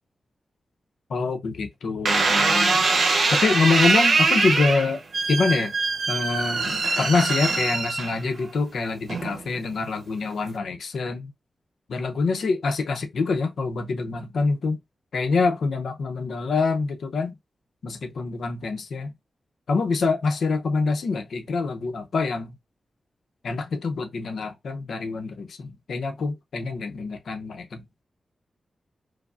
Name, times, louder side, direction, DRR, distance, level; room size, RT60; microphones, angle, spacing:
voice 1, 1.1-2.9 3.3-5.0 5.3-5.8 6.1-11.3 11.9-14.8 15.1-17.4 17.8-19.1 19.7-22.5 23.4-27.8, left 4 dB, 75° left, 0.6 m, -25 dB
sound 1, 2.1-8.5 9.1-9.6, right 3 dB, 70° right, 0.8 m, -22 dB
4.9 x 2.0 x 2.4 m
wide cardioid pair, 145°, 0 cm